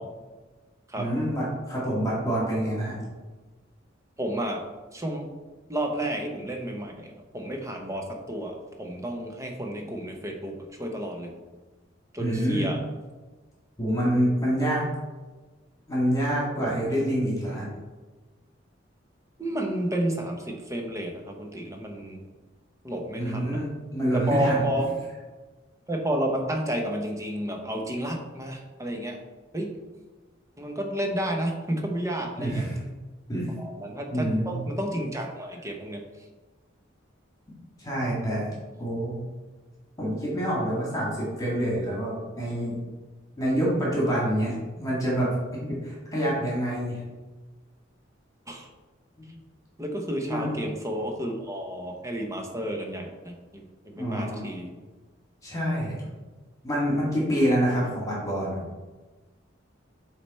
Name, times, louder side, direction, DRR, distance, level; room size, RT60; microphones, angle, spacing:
voice 1, 1.0-3.0 12.2-12.7 13.8-14.8 15.9-17.7 23.2-24.6 32.4-32.8 33.3-33.6 34.1-34.6 37.8-38.5 38.8-39.2 40.0-42.8 43.4-47.0 50.3-50.5 54.0-54.5 55.4-56.0 56.6-58.6, equal, 20° left, -5 dB, 1.9 m, -26 dB
voice 2, 4.2-4.6 4.9-5.3 5.7-11.3 12.1-12.8 19.4-22.2 22.8-23.6 24.1-24.9 25.9-29.2 29.5-29.7 30.6-32.6 33.6-36.0 48.5-48.7 49.8-54.7, right 1 dB, 15° right, 2 dB, 0.8 m, -31 dB
8.6 x 3.4 x 4.2 m, 1.2 s
head